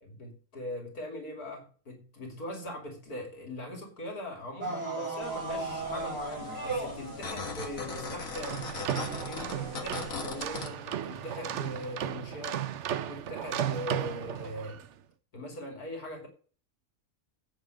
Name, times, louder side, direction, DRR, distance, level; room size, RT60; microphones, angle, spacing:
voice 1, 0.0-8.7 9.2-12.6 13.0-14.8 15.3-16.3, left 1 dB, 80° left, 3.3 m, -40 dB
sound 1, 4.6-11.8 12.8-12.9, right 2 dB, 40° right, 3.6 m, -39 dB
sound 2, 5.2-10.7, left 4 dB, 60° left, 2.3 m, -40 dB
sound 3, 8.2-14.9, right 10 dB, 60° right, 0.9 m, -35 dB
8.7 x 7.0 x 7.6 m
omnidirectional pair, 1.6 m